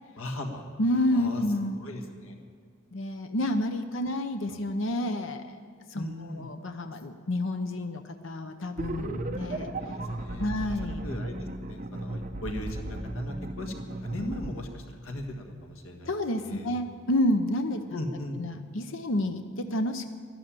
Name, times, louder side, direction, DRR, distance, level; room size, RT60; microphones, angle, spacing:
voice 1, 0.2-0.6 1.1-1.4 1.8-2.3 4.5-4.6 5.9-6.5 9.7-10.5 11.0-11.3 11.6-16.1 16.4-16.7 17.9-18.4, left 1 dB, 85° left, 4 dB, 1.7 m, -38 dB
voice 2, 0.8-1.8 2.9-5.6 5.9-9.7 10.4-11.0 16.1-18.0 18.3-20.1, left 1 dB, 65° left, 7 dB, 0.8 m, -29 dB
sound 1, 8.8-14.5, right 1 dB, 40° right, 1.0 m, -35 dB
12.5 x 12.0 x 8.8 m, 2.1 s
head